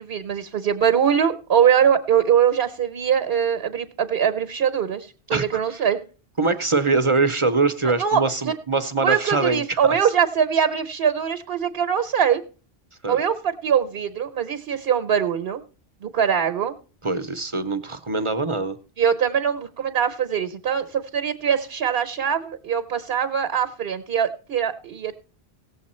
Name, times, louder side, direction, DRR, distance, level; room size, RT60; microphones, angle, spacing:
voice 1, 0.0-6.0 8.0-8.2 9.0-12.4 13.1-15.6 16.0-16.7 19.0-25.2, right 8 dB, 70° right, 10 dB, 1.0 m, -22 dB
voice 2, 5.3-5.8 6.4-9.9 13.0-13.2 17.0-18.8, right 3 dB, 35° right, 10 dB, 0.7 m, -23 dB
17.0 x 7.5 x 4.2 m, 0.36 s
omnidirectional pair, 1.1 m